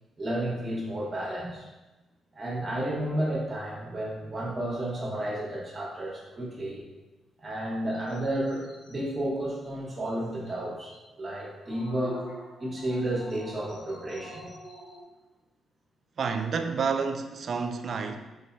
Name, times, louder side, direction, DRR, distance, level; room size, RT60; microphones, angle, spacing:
voice 1, 0.2-1.7 2.3-6.8 7.4-12.3 12.6-14.5, right 1 dB, 35° right, 1.3 m, -32 dB
sound 1, 7.9-9.1 9.6-9.7 10.0-10.1 10.4-10.5 10.9-11.0 11.4-15.0, equal, 80° left, 0.9 m, -46 dB
voice 2, 16.2-18.2, right 5 dB, 60° right, 0.3 m, -29 dB
3.7 x 3.0 x 2.6 m
supercardioid pair, 50°, 0 cm